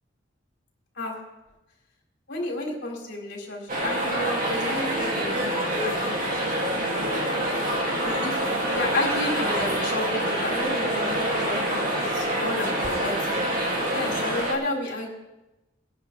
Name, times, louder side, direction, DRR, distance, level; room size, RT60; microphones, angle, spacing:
voice 1, 2.3-6.5 8.0-13.4 13.9-15.1, left 2 dB, 65° left, -1 dB, 4.0 m, -32 dB
sound 1, 3.7-14.5, right 1 dB, 45° right, 2.6 m, -26 dB
21.0 x 10.0 x 3.5 m, 1.0 s
head